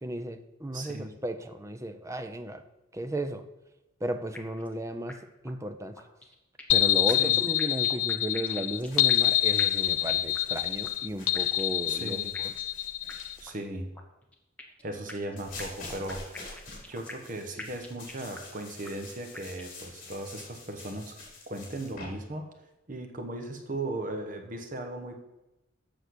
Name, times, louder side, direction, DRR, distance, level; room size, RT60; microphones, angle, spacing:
voice 1, 0.0-2.6 2.9-3.5 4.0-5.2 5.4-6.0 6.7-12.5, right 1 dB, 15° right, 9 dB, 0.6 m, -34 dB
voice 2, 0.7-1.1 7.1-7.4 11.9-12.3 13.4-13.9 14.8-21.2 21.5-22.5 22.9-25.2, right 2 dB, 45° right, 5 dB, 1.0 m, -37 dB
sound 1, 4.3-4.8 5.1-5.2 5.5-5.6 6.0-6.8 7.1-9.3 9.6-10.6 10.8-10.9 11.3-11.9 12.3-12.8 13.1-13.2 13.5-13.6 13.9-14.8 15.1-17.3 17.6-18.6 18.8-18.9 19.3-19.9, left 2 dB, 5° left, 1.1 m, -45 dB
sound 2, 6.7-13.3, left 14 dB, 85° left, 0.4 m, -26 dB
sound 3, 8.7-13.5 15.4-22.1, left 3 dB, 45° left, 3.9 m, -47 dB
8.0 x 6.6 x 6.3 m, 0.96 s
head